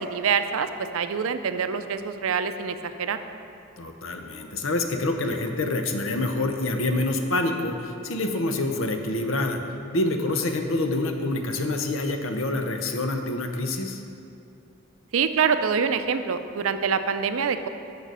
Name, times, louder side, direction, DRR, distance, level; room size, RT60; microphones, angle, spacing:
voice 1, 0.0-3.2 15.1-17.7, right 6 dB, 80° right, 10 dB, 0.5 m, -25 dB
voice 2, 3.8-9.6 9.9-14.0, left 2 dB, 70° left, 5 dB, 0.7 m, -26 dB
6.7 x 6.6 x 6.1 m, 2.5 s
head